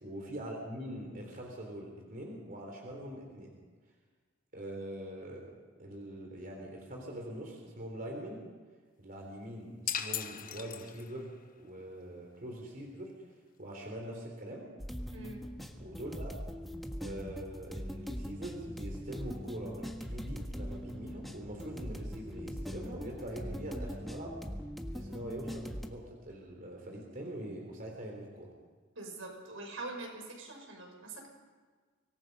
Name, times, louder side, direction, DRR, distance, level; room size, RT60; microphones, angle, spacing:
voice 1, 0.0-3.6 4.5-5.5 5.8-8.5 9.0-13.1 13.6-14.7 15.8-16.3 17.0-24.4 24.9-28.5, right 1 dB, 45° right, 1 dB, 3.7 m, -43 dB
sound 1, 9.9-11.3, left 9 dB, 45° left, 1.1 m, -37 dB
sound 2, 14.8-25.9, equal, ahead, 1.6 m, -41 dB
voice 2, 15.1-15.4 29.0-31.3, right 2 dB, 85° right, 1 dB, 6.2 m, -44 dB
25.0 x 19.5 x 5.4 m, 1.5 s
head